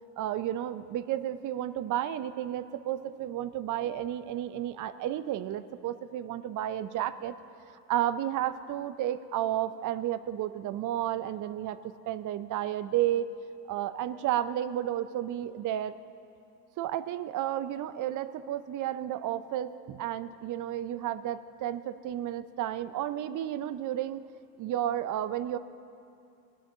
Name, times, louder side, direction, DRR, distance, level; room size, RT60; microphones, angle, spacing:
voice 1, 0.2-7.3 7.9-13.3 13.7-16.0 16.8-24.2 24.6-25.6, right 12 dB, 40° right, 13 dB, 0.6 m, -32 dB
21.0 x 12.5 x 2.8 m, 2.5 s
hypercardioid pair, 75°, 49 cm